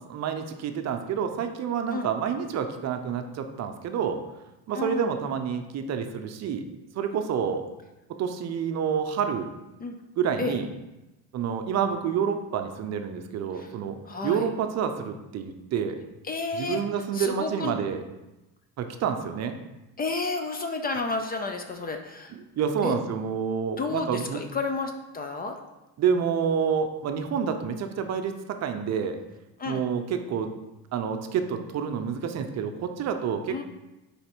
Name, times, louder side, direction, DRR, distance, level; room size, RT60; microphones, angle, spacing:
voice 1, 0.1-4.2 4.7-6.6 6.9-7.7 8.2-9.5 10.2-10.7 11.3-16.0 16.5-18.0 18.8-19.6 22.3-24.5 26.0-29.2 29.6-30.5 30.9-33.6, right 7 dB, 45° right, 7 dB, 0.6 m, -28 dB
voice 2, 4.7-5.1 9.8-10.0 10.4-10.6 13.5-13.7 14.1-14.5 16.2-16.8 17.1-17.7 20.0-22.3 22.8-22.9 23.8-25.6 29.6-29.8 33.5-33.6, left 3 dB, 25° left, 5 dB, 0.5 m, -31 dB
5.5 x 4.2 x 4.5 m, 1.0 s
cardioid pair, 125°, 37 cm